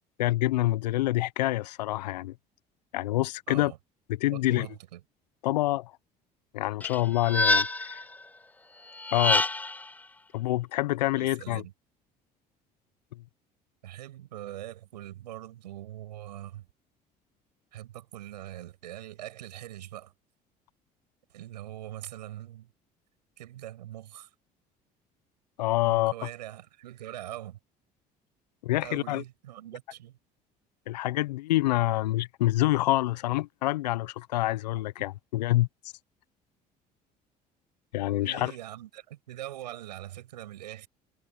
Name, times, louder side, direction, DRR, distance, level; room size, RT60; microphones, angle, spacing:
voice 1, 0.2-2.3 2.9-3.7 4.2-4.7 5.4-5.9 6.5-8.0 9.1-9.4 10.3-11.6 25.6-26.1 28.6-29.2 30.9-35.7 37.9-38.5, left 17 dB, 80° left, 1.2 m, -26 dB
voice 2, 3.5-3.8 4.3-5.0 11.2-11.7 13.8-16.7 17.7-20.1 21.3-22.7 23.4-24.3 25.9-27.6 28.8-30.2 38.2-40.9, right 13 dB, 85° right, 8.0 m, -42 dB
sound 1, 6.8-8.0 9.0-9.8, left 2 dB, 10° left, 0.4 m, -26 dB
hypercardioid pair, 60°, 21 cm